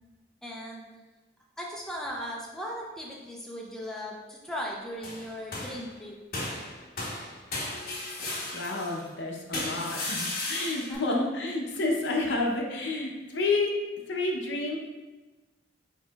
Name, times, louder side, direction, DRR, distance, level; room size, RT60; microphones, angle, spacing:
voice 1, 0.4-0.8 1.6-6.2 10.9-11.3, equal, 5° left, -3 dB, 0.5 m, -38 dB
sound 1, 5.0-5.9 6.3-9.0 9.5-10.9, left 2 dB, 55° left, 1.1 m, -35 dB
voice 2, 8.5-13.7 14.1-14.8, left 2 dB, 70° left, 0 dB, 0.7 m, -29 dB
4.7 x 4.2 x 2.3 m, 1.2 s
head